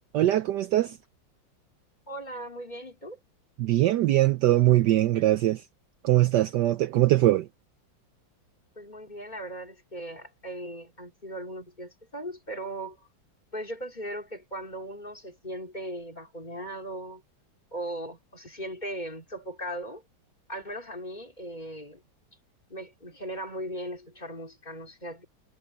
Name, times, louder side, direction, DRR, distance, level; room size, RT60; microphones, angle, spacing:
voice 1, 0.1-1.0 3.6-5.6 6.0-7.5, right 15 dB, 70° right, 1.1 m, -22 dB
voice 2, 2.1-3.2 8.7-13.1 13.5-17.2 17.7-20.0 20.5-22.0 22.7-25.2, right 1 dB, 20° left, 3.4 m, -38 dB
omnidirectional pair, 2.1 m